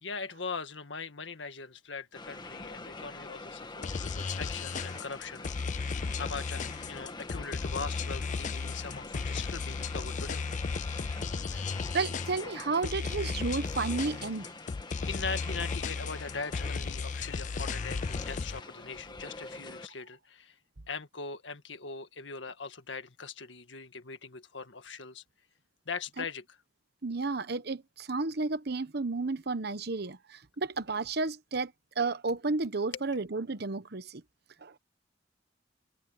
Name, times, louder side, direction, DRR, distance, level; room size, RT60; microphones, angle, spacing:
voice 1, 0.0-5.5 5.7-5.9 6.2-10.4 15.1-20.5 20.9-25.2 25.8-26.6, left 4 dB, 90° left, 1.8 m, -40 dB
sound 1, 2.1-19.9, left 2 dB, 25° left, 1.5 m, -45 dB
sound 2, 3.8-18.6, left 4 dB, 45° left, 0.5 m, -35 dB
voice 2, 11.9-14.5 26.2-26.3 27.0-34.2 34.6-34.8, right 3 dB, 60° right, 1.0 m, -32 dB
head